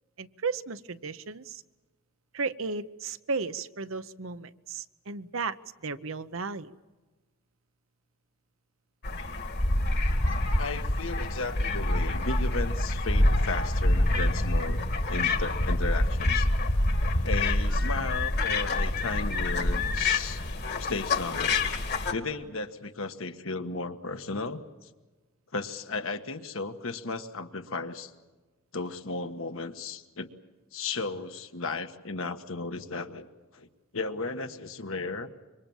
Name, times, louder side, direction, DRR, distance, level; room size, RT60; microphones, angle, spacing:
voice 1, 0.2-1.6 2.3-5.6 5.8-6.7, right 4 dB, 70° right, 13 dB, 0.9 m, -34 dB
sound 1, 9.0-22.1, left 2 dB, 55° left, 1.9 m, -26 dB
voice 2, 10.6-14.8 15.1-16.5 17.2-20.4 20.8-21.6 22.1-24.6 25.5-28.1 28.7-30.3 30.7-33.3 33.5-33.7 33.9-35.3, left 3 dB, 75° left, 7 dB, 1.5 m, -35 dB
26.5 x 24.0 x 7.2 m, 1.2 s
head